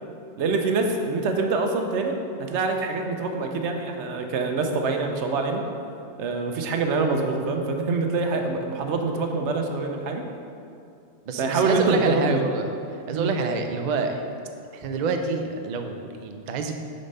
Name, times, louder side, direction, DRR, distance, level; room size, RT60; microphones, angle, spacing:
voice 1, 0.4-5.6 6.2-10.2 11.4-12.4 13.1-13.3, right 3 dB, 90° right, 4 dB, 1.0 m, -25 dB
voice 2, 11.3-12.6 12.9-14.2 14.7-16.7, right 4 dB, 55° right, 5 dB, 0.5 m, -28 dB
6.6 x 4.1 x 5.3 m, 2.6 s
omnidirectional pair, 1.2 m